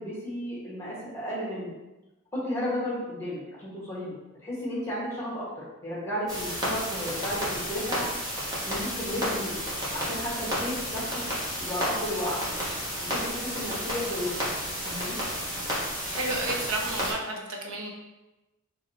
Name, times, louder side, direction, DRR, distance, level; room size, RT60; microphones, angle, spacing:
voice 1, 0.0-1.7 2.3-4.1 4.4-8.0 8.6-9.6 9.9-11.2 11.6-12.6 13.0-14.4 14.8-15.2, left 1 dB, 15° left, -6 dB, 1.4 m, -33 dB
sound 1, 6.3-17.1, equal, 20° right, 1.2 m, -32 dB
voice 2, 16.1-17.9, right 2 dB, 80° right, 1 dB, 0.7 m, -32 dB
5.0 x 2.7 x 2.7 m, 1.0 s
head